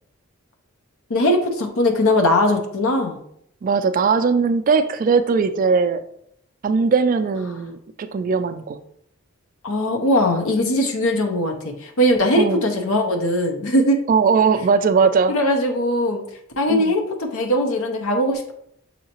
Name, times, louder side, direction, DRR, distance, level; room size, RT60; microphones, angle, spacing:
voice 1, 1.1-3.2 9.6-14.0 15.3-16.2 16.6-18.5, left 1 dB, 85° left, 4 dB, 0.7 m, -20 dB
voice 2, 3.6-6.0 6.6-8.8 12.3-12.6 14.1-15.3 16.7-16.9, right 5 dB, 40° right, 10 dB, 0.3 m, -19 dB
6.3 x 2.8 x 2.9 m, 0.72 s
head